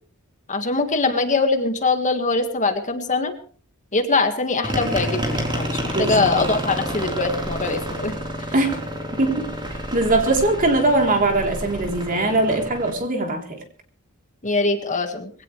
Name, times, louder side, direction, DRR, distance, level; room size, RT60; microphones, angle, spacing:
voice 1, 0.5-3.3 3.9-8.1 14.4-15.3, left 3 dB, 35° left, 6 dB, 1.9 m, -22 dB
sound 1, 4.6-12.9, equal, 20° right, 4.2 m, -29 dB
voice 2, 5.9-6.4 8.5-8.8 9.1-9.5 9.9-13.6, right 2 dB, 40° right, 2 dB, 3.7 m, -21 dB
22.0 x 17.0 x 3.4 m, 0.42 s
head